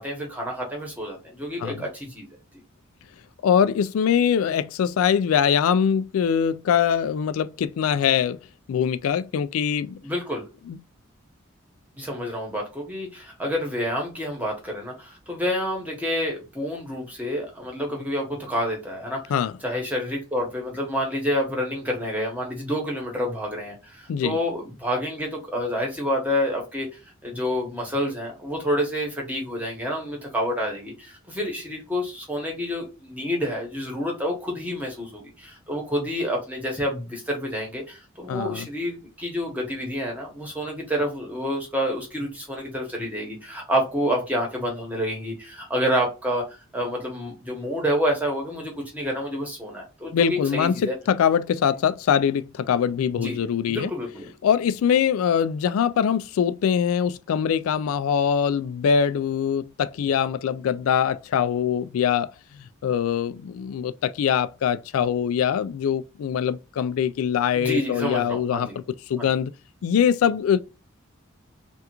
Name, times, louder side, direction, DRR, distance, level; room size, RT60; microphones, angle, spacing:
voice 1, 0.0-2.3 10.0-10.5 12.0-19.3 19.6-46.4 46.7-50.9 53.2-53.4 53.7-54.3 67.5-68.8 69.2-69.3, equal, 10° right, 1.1 m, -28 dB
voice 2, 3.4-8.4 8.7-10.0 10.7-10.8 19.3-19.5 24.1-24.4 38.3-38.7 50.1-53.9 54.4-62.3 62.5-68.7 69.1-69.5 69.8-70.6, left 8 dB, 90° left, 0.3 m, -23 dB
3.4 x 2.4 x 2.9 m
head